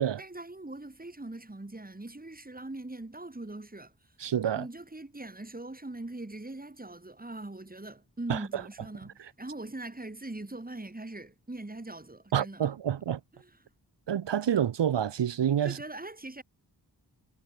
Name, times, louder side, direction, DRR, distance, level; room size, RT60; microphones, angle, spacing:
voice 1, 0.2-3.9 4.5-12.7 13.4-13.5 15.6-16.4, right 2 dB, 20° right, 3.7 m, -41 dB
voice 2, 4.2-4.7 8.3-8.6 12.3-13.2 14.1-15.8, right 9 dB, 85° right, 1.1 m, -28 dB
cardioid pair, 45°, 42 cm